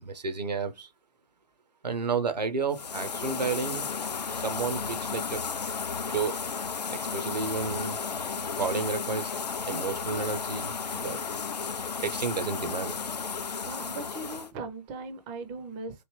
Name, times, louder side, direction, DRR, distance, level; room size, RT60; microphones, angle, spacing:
voice 1, 0.0-0.9 1.8-3.9 4.3-5.4 6.1-6.3 6.9-8.0 8.6-9.3 9.7-11.2 12.0-12.9, right 4 dB, 85° right, 0.6 m, -31 dB
sound 1, 2.7-14.5, left 5 dB, 90° left, 0.4 m, -33 dB
voice 2, 13.6-16.0, right 3 dB, 20° right, 0.4 m, -39 dB
3.2 x 2.6 x 2.9 m
figure-of-eight pair, 130°, 21 cm